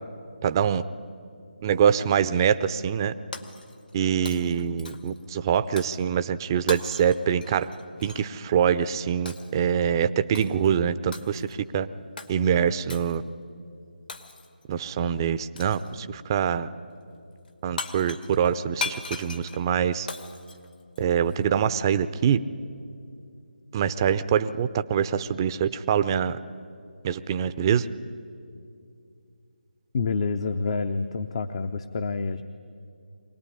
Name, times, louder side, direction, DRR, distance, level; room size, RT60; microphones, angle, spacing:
voice 1, 0.4-0.8 1.6-3.1 3.9-7.7 8.0-11.9 12.3-13.2 14.7-16.7 17.6-20.1 21.0-22.4 23.7-26.4 27.0-27.9, right 8 dB, 25° right, 13 dB, 0.6 m, -24 dB
Shatter, 3.3-4.0 4.3-5.2 5.8-6.0 6.7-8.3 9.3-9.6 10.3-10.7 11.1-11.6 12.2-12.3 12.9-13.2 14.1-14.6 15.6-15.9 17.5-17.6 17.8-21.4, left 4 dB, 70° left, 2.2 m, -38 dB
voice 2, 29.9-32.4, left 4 dB, 35° left, 9 dB, 0.7 m, -28 dB
24.5 x 18.5 x 9.9 m, 2.5 s
figure-of-eight pair, 155°, 5 cm